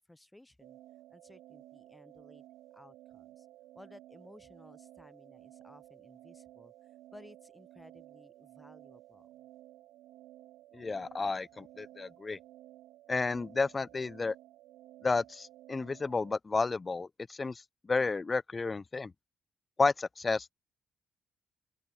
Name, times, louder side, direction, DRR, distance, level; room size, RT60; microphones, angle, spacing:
voice 1, 0.1-0.8 1.1-2.5 2.7-3.5 3.7-6.7 7.1-9.3, left 1 dB, 10° left, 7.7 m, -57 dB
sound 1, 0.6-16.3, right 15 dB, 90° right, 2.4 m, -55 dB
voice 2, 10.7-12.4 13.1-14.3 15.0-19.1 19.8-20.5, left 4 dB, 25° left, 1.2 m, -32 dB
open air
cardioid pair, 90°, 0 cm